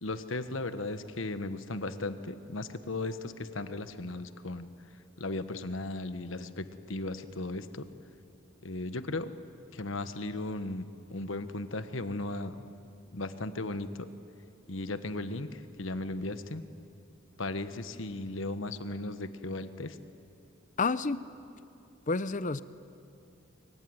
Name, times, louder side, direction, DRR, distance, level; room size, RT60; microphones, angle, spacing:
voice 1, 0.0-4.7 5.2-7.9 8.6-9.3 9.7-12.7 13.1-14.1 14.7-16.6 17.4-20.0, left 2 dB, 70° left, 11 dB, 1.3 m, -36 dB
voice 2, 20.8-21.2 22.1-22.6, left 3 dB, 40° left, 15 dB, 0.7 m, -29 dB
24.5 x 24.0 x 9.7 m, 2.5 s
head